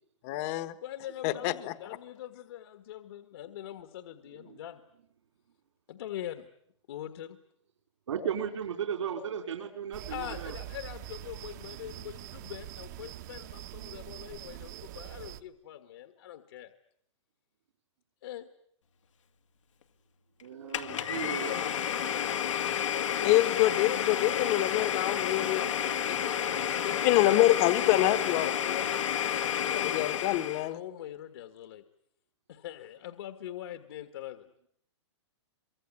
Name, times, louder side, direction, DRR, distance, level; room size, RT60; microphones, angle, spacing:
voice 1, 0.2-0.7 1.2-1.7 23.2-25.7 27.0-28.5 29.6-30.8, left 16 dB, 30° left, 12 dB, 1.2 m, -26 dB
voice 2, 0.8-4.8 5.9-6.5 6.9-7.4 10.1-16.7 18.2-18.5 21.4-22.3 23.2-24.5 25.4-28.0 28.4-30.3 30.7-31.8 32.5-34.5, left 12 dB, 55° left, 8 dB, 1.6 m, -42 dB
voice 3, 8.1-10.5 14.2-14.8 20.4-21.5, right 8 dB, 75° right, 5 dB, 3.8 m, -36 dB
sound 1, 9.9-15.4, right 14 dB, 35° right, 1.1 m, -44 dB
Domestic sounds home sounds, 20.7-30.7, left 9 dB, 85° left, 2.2 m, -31 dB
24.5 x 23.5 x 9.7 m, 0.72 s
hypercardioid pair, 165°, 15 cm